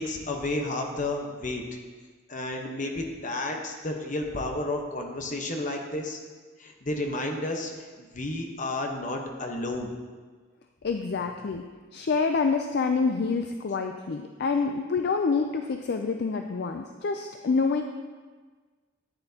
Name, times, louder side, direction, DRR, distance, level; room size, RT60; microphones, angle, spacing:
voice 1, 0.0-1.6 2.3-6.2 6.6-7.7 8.0-9.9, left 2 dB, 40° left, 2 dB, 1.0 m, -31 dB
voice 2, 10.8-11.6 11.9-17.8, left 4 dB, 55° left, 5 dB, 0.4 m, -27 dB
11.5 x 8.9 x 2.8 m, 1.4 s
head